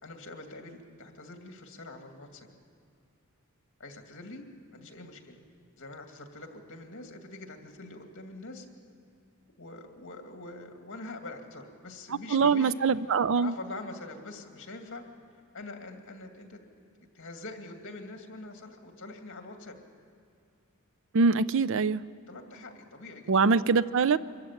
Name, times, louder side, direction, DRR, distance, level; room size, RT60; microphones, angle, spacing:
voice 1, 0.0-2.5 3.8-4.5 4.7-5.4 5.8-8.7 9.6-12.7 13.3-15.0 15.5-16.6 17.1-19.8 22.3-23.3, left 2 dB, 60° left, 4 dB, 2.4 m, -44 dB
voice 2, 12.3-13.5 21.1-22.0 23.3-24.2, right 5 dB, 60° right, 16 dB, 0.5 m, -23 dB
24.0 x 14.5 x 9.0 m, 2.4 s
head